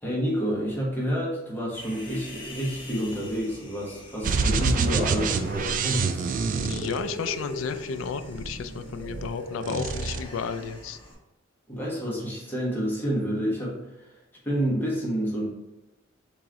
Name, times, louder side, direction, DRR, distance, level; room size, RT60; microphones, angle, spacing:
voice 1, 0.0-6.3 11.7-13.8 14.0-14.1 14.4-15.4, equal, 10° left, -5 dB, 1.2 m, -29 dB
Human voice, 1.7-11.1, left 1 dB, 25° left, 1.2 m, -42 dB
Rbreak-gran, 4.2-7.5 8.2-9.3 9.6-10.2, right 4 dB, 40° right, 0.3 m, -27 dB
voice 2, 6.5-11.0, left 6 dB, 75° left, 10 dB, 0.4 m, -32 dB
3.7 x 3.0 x 4.7 m, 0.97 s
head